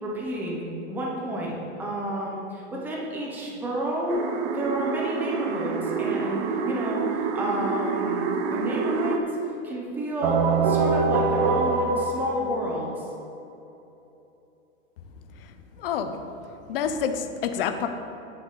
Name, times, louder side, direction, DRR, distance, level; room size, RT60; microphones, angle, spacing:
voice 1, 0.0-4.2 4.5-9.2 9.6-13.1, right 1 dB, 5° right, -4 dB, 1.0 m, -31 dB
sound 1, 4.1-9.2, right 5 dB, 25° right, 0.5 m, -28 dB
sound 2, 10.2-13.1, right 3 dB, 40° right, 0.9 m, -23 dB
voice 2, 15.8-16.2 16.7-17.9, left 7 dB, 50° left, 8 dB, 0.8 m, -27 dB
10.5 x 7.9 x 3.9 m, 2.9 s
hypercardioid pair, 155°, 38 cm